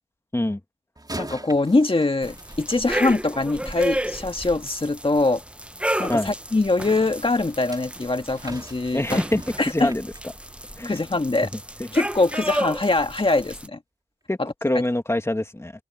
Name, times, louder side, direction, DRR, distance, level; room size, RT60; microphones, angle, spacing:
sound 1, 1.0-3.5 7.3-11.1 11.5-11.7 12.3-12.4, right 2 dB, 20° right, 4.1 m, -41 dB
voice 1, 1.2-5.4 6.0-9.2 9.6-9.9 10.8-11.5 11.9-13.8 14.4-14.5, left 2 dB, 30° left, 1.9 m, -23 dB
sound 2, 2.2-13.7, right 1 dB, 5° right, 1.1 m, -32 dB
voice 2, 8.9-10.1 10.8-11.0 11.8-11.9 14.3-15.7, left 1 dB, 15° left, 2.2 m, -25 dB
cardioid pair, 55°, 18 cm